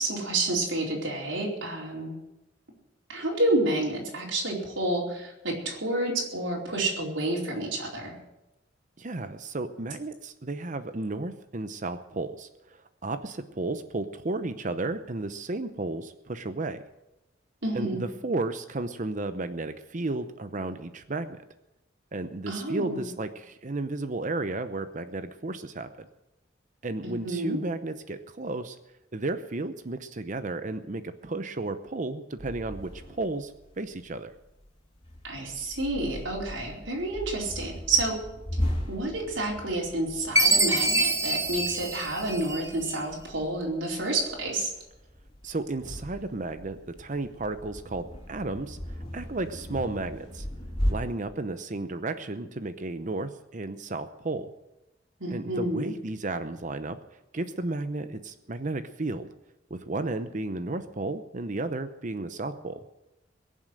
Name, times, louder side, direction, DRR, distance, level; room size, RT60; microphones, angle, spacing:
voice 1, 0.0-2.2 3.1-8.2 17.6-18.0 22.5-23.1 27.0-27.7 35.2-38.2 38.9-44.7 55.2-55.9, right 2 dB, 75° right, -2 dB, 4.5 m, -29 dB
voice 2, 9.0-16.8 17.7-21.4 22.1-26.1 26.8-28.8 29.1-34.3 45.4-50.5 50.9-54.5 55.3-57.0 57.3-59.3 59.7-62.8, right 2 dB, 40° right, 11 dB, 0.7 m, -33 dB
sound 1, 32.4-50.9, equal, 30° left, 3.1 m, -38 dB
Chime, 40.4-42.9, right 2 dB, 15° right, 1.0 m, -25 dB
22.0 x 7.5 x 7.8 m, 0.92 s
head